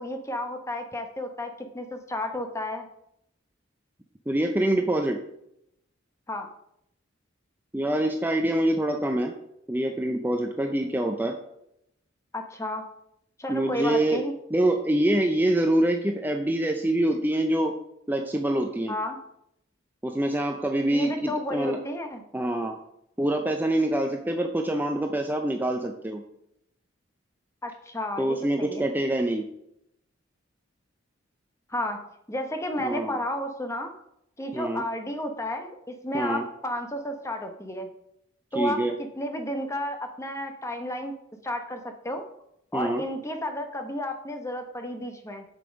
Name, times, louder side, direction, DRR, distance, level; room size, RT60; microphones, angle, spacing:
voice 1, 0.0-2.9 6.3-6.5 12.3-12.8 13.4-14.3 18.9-19.2 20.9-22.2 27.6-28.9 31.7-32.0 32.3-33.9 34.4-37.9 38.5-41.2 41.4-42.2 42.7-45.4, left 1 dB, 15° left, 5 dB, 1.0 m, -32 dB
voice 2, 4.3-5.2 7.7-9.3 9.7-11.3 13.5-14.2 14.5-17.7 18.1-18.9 20.0-21.8 22.3-22.8 23.2-26.2 28.2-29.5 32.8-33.2 34.5-34.8 36.1-36.5 38.5-38.9 42.7-43.0, right 1 dB, 10° right, 3 dB, 0.5 m, -25 dB
6.9 x 6.8 x 5.2 m, 0.77 s
head